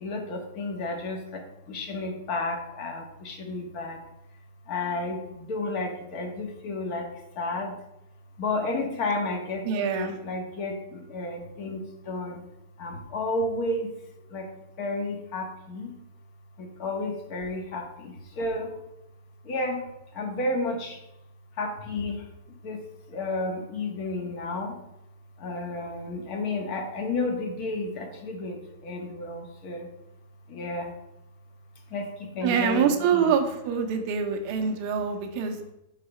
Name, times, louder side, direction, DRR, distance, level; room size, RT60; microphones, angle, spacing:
voice 1, 0.0-1.2 1.7-4.0 4.7-5.2 5.5-7.0 7.4-7.7 8.4-10.7 11.1-11.8 12.1-12.3 12.8-13.8 14.3-14.4 14.8-15.8 16.8-17.8 18.4-18.7 19.5-19.8 20.2-20.9 21.6-22.2 22.6-22.8 23.1-24.7 25.4-28.6 28.8-29.8 30.5-30.9 31.9-32.1 32.4-33.3, left 2 dB, 45° left, 2 dB, 1.5 m, -31 dB
voice 2, 9.6-10.2 32.4-35.7, right 7 dB, 50° right, 4 dB, 0.9 m, -25 dB
5.4 x 4.1 x 5.1 m, 0.85 s
hypercardioid pair, 140°, 0 cm